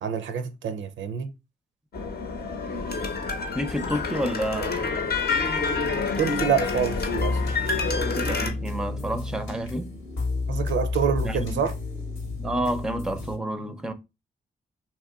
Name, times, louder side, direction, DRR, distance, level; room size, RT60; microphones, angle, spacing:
voice 1, 0.0-1.3 6.2-7.4 10.5-11.7, right 7 dB, 65° right, 0.4 m, -26 dB
sound 1, 1.9-8.5, left 4 dB, 50° left, 0.8 m, -28 dB
voice 2, 3.5-4.9 7.9-9.9 11.2-11.6 12.4-13.9, right 1 dB, 5° right, 0.5 m, -30 dB
sound 2, 6.3-13.4, left 3 dB, 75° left, 1.0 m, -31 dB
3.0 x 2.7 x 2.3 m
supercardioid pair, 40°, 21 cm